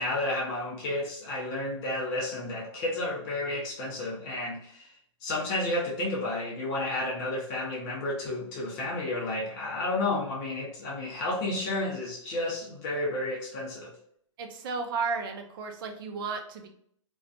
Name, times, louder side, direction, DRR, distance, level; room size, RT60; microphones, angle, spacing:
voice 1, 0.0-4.9 5.2-13.9, left 2 dB, 30° left, -4 dB, 0.6 m, -31 dB
voice 2, 14.4-16.7, right 4 dB, 45° right, 4 dB, 0.5 m, -33 dB
2.5 x 2.2 x 2.3 m, 0.66 s
hypercardioid pair, 140°, 16 cm